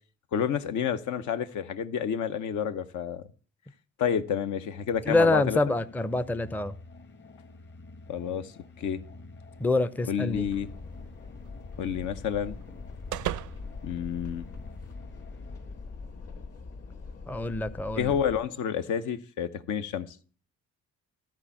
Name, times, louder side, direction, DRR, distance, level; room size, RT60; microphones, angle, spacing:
voice 1, 0.3-3.2 4.0-5.6 8.1-9.0 10.0-10.7 11.8-12.6 13.8-14.4 18.0-20.2, left 8 dB, 75° left, 0.9 m, -29 dB
sound 1, 4.6-16.2, left 2 dB, 40° left, 1.3 m, -49 dB
voice 2, 5.1-6.7 9.6-10.5 17.3-18.1, left 2 dB, 5° left, 0.5 m, -26 dB
Background noise in London, 10.3-18.4, left 4 dB, 55° left, 2.0 m, -43 dB
sound 2, 10.5-14.9, right 14 dB, 75° right, 0.5 m, -41 dB
13.0 x 4.5 x 7.0 m
cardioid pair, 90°, 30 cm